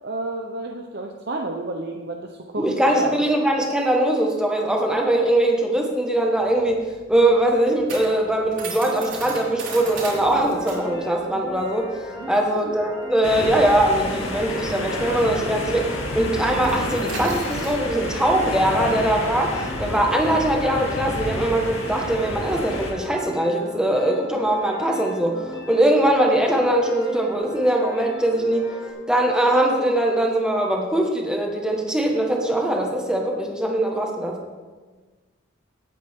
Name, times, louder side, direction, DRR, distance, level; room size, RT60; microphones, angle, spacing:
voice 1, 0.0-2.7 3.0-3.2 12.2-12.8, right 2 dB, 50° right, 1 dB, 0.8 m, -31 dB
voice 2, 2.6-6.8 7.1-11.9 12.3-15.9 16.1-28.7 29.1-34.4, right 1 dB, 5° right, 0 dB, 1.5 m, -21 dB
sound 1, 6.4-15.3 15.6-15.8 16.1-21.9, right 3 dB, 70° right, 3.9 m, -37 dB
sound 2, 9.7-28.9, left 1 dB, 20° left, 3.2 m, -38 dB
sound 3, 13.2-22.9, left 1 dB, 85° left, 2.5 m, -30 dB
17.0 x 8.8 x 3.7 m, 1.4 s
head